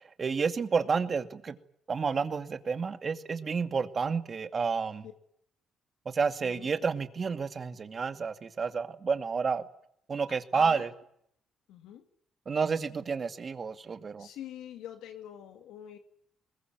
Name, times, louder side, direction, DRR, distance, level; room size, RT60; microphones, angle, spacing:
voice 1, 0.2-1.6 1.9-5.0 6.1-9.6 10.1-10.9 12.5-14.3, right 5 dB, 40° right, 9 dB, 2.4 m, -30 dB
voice 2, 6.4-6.7 10.5-10.9 11.7-12.1 14.2-16.0, left 10 dB, 90° left, 7 dB, 2.2 m, -44 dB
22.5 x 21.0 x 9.5 m, 0.69 s
cardioid pair, 90°, 0 cm